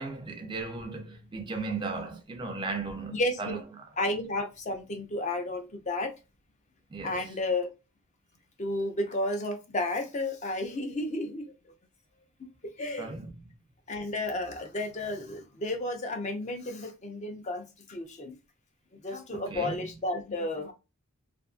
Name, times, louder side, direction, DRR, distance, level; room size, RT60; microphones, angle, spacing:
voice 1, 0.0-3.6 6.9-7.4 13.0-13.3 19.5-19.8, right 3 dB, 20° right, 0.5 m, -36 dB
voice 2, 3.1-3.6 4.0-6.1 7.0-7.7 8.6-11.5 12.4-12.5 12.8-13.1 13.9-18.4 19.0-20.7, left 2 dB, 30° left, 0.5 m, -32 dB
2.5 x 2.5 x 2.4 m
head